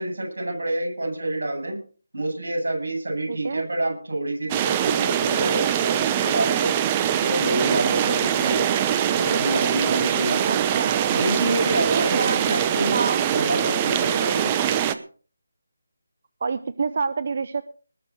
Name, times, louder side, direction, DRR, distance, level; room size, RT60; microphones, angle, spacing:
voice 1, 0.0-1.8 2.1-6.7 7.2-8.7 9.2-10.5 11.1-13.0 13.3-14.8, right 1 dB, 70° right, 4 dB, 8.0 m, -27 dB
voice 2, 3.3-3.6 10.5-11.0 11.9-12.4 12.9-13.3 16.4-17.6, right 4 dB, 50° right, 14 dB, 0.8 m, -27 dB
sound 1, 4.5-14.9, right 10 dB, 20° right, 0.9 m, -23 dB
20.0 x 7.1 x 6.4 m, 0.41 s
figure-of-eight pair, 155°, 0 cm